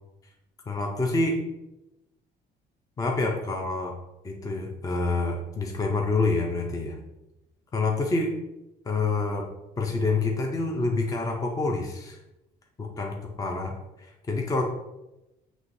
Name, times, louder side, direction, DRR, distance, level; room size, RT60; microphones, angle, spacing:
voice 1, 0.7-1.4 3.0-4.0 4.2-7.0 7.7-8.3 8.8-9.5 9.8-12.2 12.8-14.7, left 3 dB, 20° left, 2 dB, 0.5 m, -27 dB
6.1 x 3.0 x 2.6 m, 0.95 s
cardioid pair, 110°, 17 cm